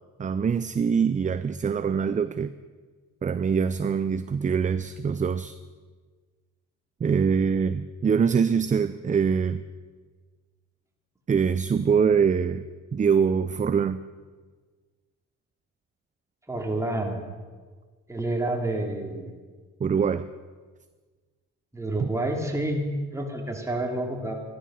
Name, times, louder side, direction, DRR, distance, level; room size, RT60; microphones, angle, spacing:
voice 1, 0.2-2.5 3.2-5.6 7.0-9.6 11.3-12.6 12.9-14.0 19.8-20.3 22.0-22.1, right 6 dB, 25° right, 13 dB, 0.5 m, -24 dB
voice 2, 16.5-17.2 18.1-19.3 21.7-24.3, right 1 dB, 10° right, 1 dB, 2.9 m, -29 dB
13.5 x 13.0 x 6.4 m, 1.5 s
cardioid pair, 90°, 30 cm